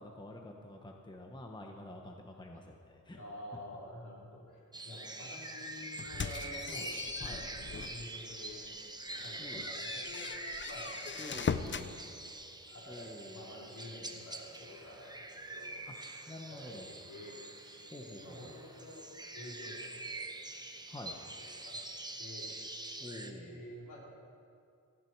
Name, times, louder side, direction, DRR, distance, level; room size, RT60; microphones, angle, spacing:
voice 1, 0.0-3.2 6.7-6.9 7.2-7.4 9.4-9.6 11.2-11.9 12.9-13.5 15.9-16.0 16.3-16.9 17.9-18.6 20.9-21.2 23.0-23.7, left 1 dB, 15° left, 2 dB, 1.0 m, -48 dB
voice 2, 3.1-8.7 9.2-10.4 10.7-11.0 11.3-12.2 12.7-19.0 19.3-20.3 21.4-24.0, left 1 dB, 65° left, -4 dB, 4.0 m, -50 dB
sound 1, 4.7-23.3, right 2 dB, 10° right, 0.9 m, -45 dB
sound 2, 6.0-8.1 8.5-8.7 9.1-11.9, left 5 dB, 35° left, 0.6 m, -39 dB
17.5 x 14.5 x 4.6 m, 2.5 s
wide cardioid pair, 130°, 33 cm